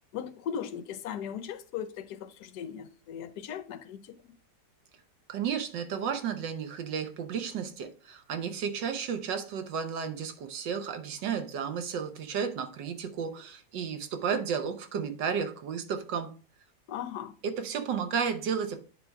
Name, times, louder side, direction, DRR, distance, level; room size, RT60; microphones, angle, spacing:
voice 1, 0.1-4.2 16.9-17.4, left 8 dB, 70° left, 1.2 m, -38 dB
voice 2, 5.3-16.3 17.4-18.8, right 7 dB, 90° right, 1.6 m, -33 dB
9.3 x 3.6 x 4.5 m
omnidirectional pair, 1.9 m